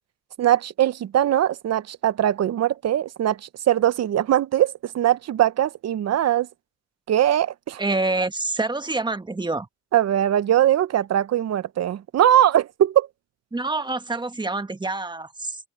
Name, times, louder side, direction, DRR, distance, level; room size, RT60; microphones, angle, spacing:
voice 1, 0.4-6.5 7.1-7.8 9.9-13.1, right 11 dB, 60° right, 0.9 m, -21 dB
voice 2, 7.8-9.7 13.5-15.6, right 2 dB, 15° right, 1.5 m, -26 dB
cardioid pair, 90°, 30 cm